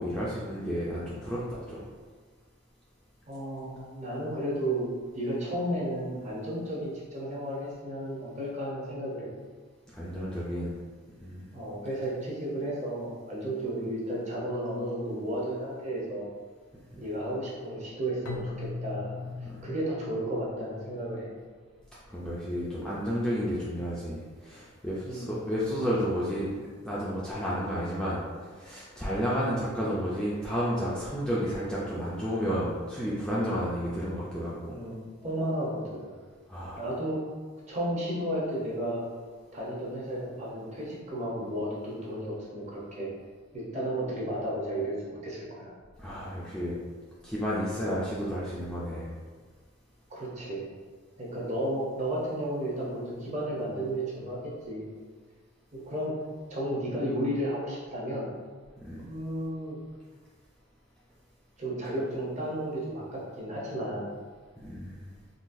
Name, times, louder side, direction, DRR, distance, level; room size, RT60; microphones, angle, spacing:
voice 1, 0.0-1.8 9.9-10.7 11.2-11.5 16.9-17.0 19.2-19.5 22.1-26.5 26.8-34.8 36.5-36.9 46.0-46.8 47.2-49.1 58.8-59.1 64.6-65.1, equal, 5° left, -8 dB, 0.3 m, -32 dB
voice 2, 3.3-9.3 11.5-16.3 17.0-19.2 19.6-21.3 25.1-25.4 34.7-36.1 36.8-37.2 37.7-39.0 39.5-43.1 43.5-45.7 50.1-50.7 51.2-54.4 54.7-54.9 55.7-56.2 56.5-58.3 59.1-59.8 61.6-64.1, right 1 dB, 35° right, -5 dB, 0.7 m, -33 dB
Keyboard (musical), 18.3-21.2, left 3 dB, 75° left, 0.4 m, -39 dB
3.8 x 2.3 x 2.5 m, 1.5 s
head